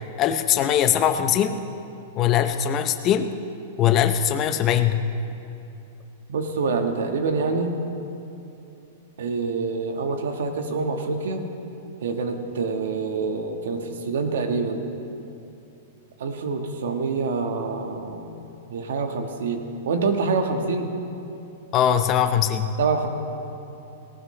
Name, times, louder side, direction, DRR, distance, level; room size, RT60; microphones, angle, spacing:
voice 1, 0.2-1.6 2.2-3.3 3.8-5.0 21.7-22.7, left 9 dB, 20° left, 8 dB, 0.6 m, -21 dB
voice 2, 6.3-7.7 9.2-11.4 12.0-14.8 16.2-18.3 18.7-20.9 22.8-23.1, right 4 dB, 70° right, 5 dB, 1.4 m, -26 dB
18.5 x 18.0 x 3.2 m, 2.9 s
supercardioid pair, 180°, 0 cm